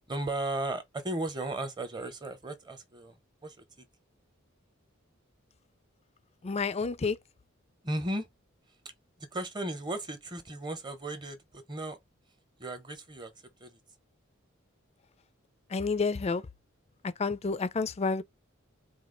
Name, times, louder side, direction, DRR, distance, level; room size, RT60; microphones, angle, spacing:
voice 1, 0.1-3.9 7.8-8.3 9.2-12.0 12.6-13.3 13.6-13.8, right 1 dB, 20° right, 0.8 m, -36 dB
voice 2, 6.4-7.2 15.7-16.4 17.2-18.2, left 4 dB, 30° left, 0.4 m, -29 dB
4.2 x 2.4 x 3.8 m
head